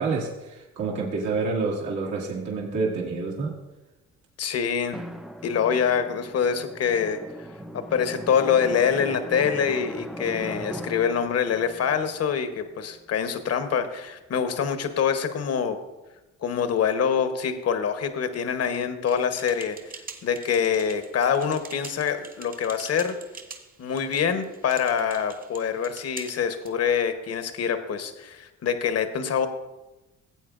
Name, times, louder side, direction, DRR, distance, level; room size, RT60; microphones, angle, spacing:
voice 1, 0.0-3.5, right 4 dB, 70° right, -3 dB, 2.0 m, -28 dB
voice 2, 4.4-5.0 5.4-7.2 7.7-15.8 16.4-23.2 23.8-29.5, left 7 dB, 55° left, 8 dB, 0.9 m, -25 dB
Drum, 4.9-13.2, equal, ahead, 0.5 m, -39 dB
sound 1, 19.0-26.7, right 4 dB, 30° right, 1.0 m, -44 dB
17.5 x 8.2 x 2.4 m, 1.0 s
cardioid pair, 90°, 30 cm